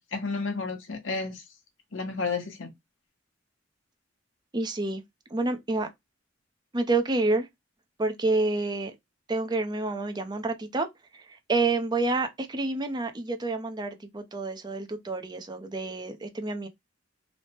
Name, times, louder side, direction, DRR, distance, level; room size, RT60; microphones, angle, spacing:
voice 1, 0.0-1.4 1.9-2.7, left 4 dB, 85° left, 0.9 m, -31 dB
voice 2, 4.5-5.0 5.3-5.9 6.7-7.5 8.0-8.9 9.3-10.9 11.1-16.7, right 3 dB, 20° right, 0.5 m, -28 dB
3.2 x 2.0 x 4.2 m
head